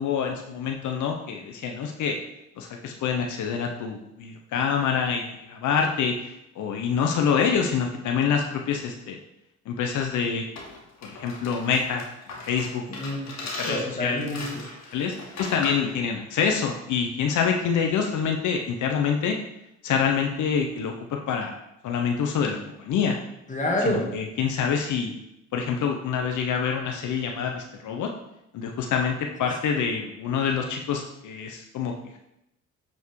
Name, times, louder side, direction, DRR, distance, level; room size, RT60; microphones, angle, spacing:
voice 1, 0.0-2.2 2.6-9.2 9.7-10.4 11.0-12.0 12.5-12.8 13.4-14.3 14.9-19.4 19.8-21.5 21.8-23.2 23.8-25.1 25.5-28.1 28.5-32.2, left 6 dB, 75° left, 2 dB, 0.9 m, -26 dB
sound 1, 10.5-15.9, left 2 dB, 60° left, 2.2 m, -38 dB
voice 2, 12.9-13.3 13.7-15.0 23.5-24.1, left 1 dB, 25° left, 0 dB, 2.1 m, -28 dB
8.4 x 4.6 x 4.7 m, 0.84 s
cardioid pair, 90°, 30 cm